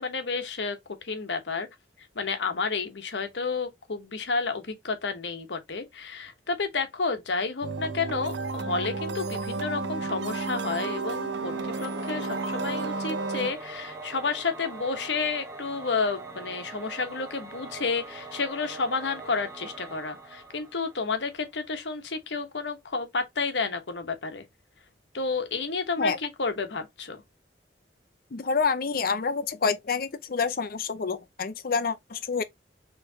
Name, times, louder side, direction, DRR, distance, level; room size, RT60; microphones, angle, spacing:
voice 1, 0.0-1.7 2.1-24.4 25.1-27.2, left 4 dB, 80° left, 1.0 m, -31 dB
sound 1, 7.6-13.5, right 3 dB, 85° right, 0.5 m, -32 dB
Singing / Musical instrument, 11.4-21.4, right 2 dB, 15° right, 0.8 m, -42 dB
voice 2, 28.3-32.4, left 5 dB, 55° left, 0.6 m, -28 dB
4.5 x 3.2 x 2.7 m
head